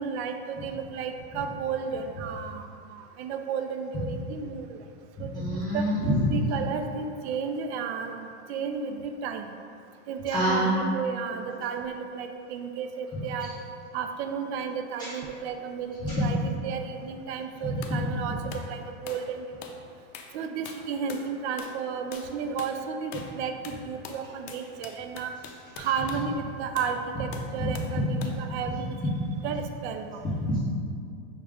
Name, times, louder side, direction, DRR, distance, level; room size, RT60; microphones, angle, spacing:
voice 1, 0.0-4.8 5.2-5.8 6.3-9.5 10.1-13.5 13.9-19.6 20.3-25.3 25.8-29.1 29.4-30.4, right 6 dB, 65° right, 6 dB, 0.5 m, -33 dB
voice 2, 5.3-6.3 10.3-10.7 15.0-15.1 16.0-16.2 17.7-18.0 30.2-30.6, equal, 10° left, -11 dB, 0.6 m, -26 dB
sound 1, 17.8-18.0 18.5-18.7 19.1-19.3 19.6-19.8 20.1-20.4 20.7-21.3 21.6-21.8 22.1-22.3 22.6-22.8 23.1-23.4 23.6-26.3 26.8-27.0 27.3-28.0 28.2-28.4, left 6 dB, 70° left, 0.5 m, -43 dB
5.6 x 2.4 x 3.5 m, 2.4 s
supercardioid pair, 150°, 35 cm